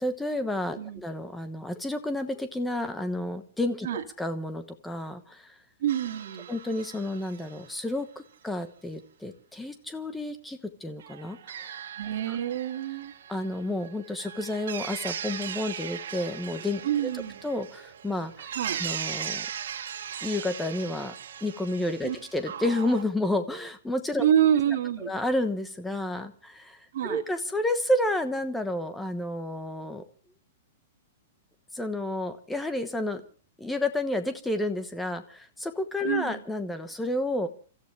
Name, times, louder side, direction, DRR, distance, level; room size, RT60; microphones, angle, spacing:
voice 1, 0.0-3.9 4.2-5.5 6.5-8.1 8.4-11.8 12.3-12.4 13.3-16.8 17.4-18.5 18.8-19.5 20.2-21.1 21.4-24.3 25.0-30.0 31.7-33.2 33.6-37.5, left 1 dB, 5° left, 9 dB, 1.1 m, -30 dB
voice 2, 5.8-6.5 12.0-13.1 16.8-17.4 18.6-18.8 22.0-22.2 24.2-25.1 26.9-27.2 36.0-36.4, right 10 dB, 55° right, 4 dB, 2.2 m, -27 dB
sound 1, 5.9-7.9 11.0-23.0, right 9 dB, 75° right, 2.0 m, -39 dB
30.0 x 14.5 x 3.4 m, 0.39 s
supercardioid pair, 180°, 0 cm